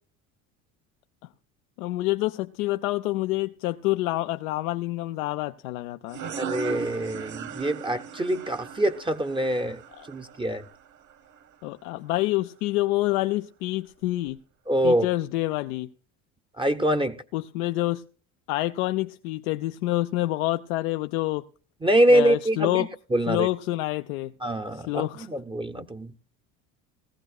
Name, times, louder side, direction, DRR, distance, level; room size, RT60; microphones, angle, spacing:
voice 1, 1.8-6.2 10.0-10.1 11.6-14.4 14.8-15.9 17.3-18.0 18.5-21.4 22.1-22.9 23.3-24.3 24.7-25.3, left 17 dB, 80° left, 0.6 m, -27 dB
sound 1, 6.1-11.5, right 6 dB, 45° right, 1.3 m, -38 dB
voice 2, 6.4-9.8 10.1-10.6 14.7-15.1 16.6-17.2 21.8-23.5 24.4-26.1, right 1 dB, 10° right, 0.7 m, -24 dB
19.0 x 15.0 x 2.4 m
hypercardioid pair, 75°, 42 cm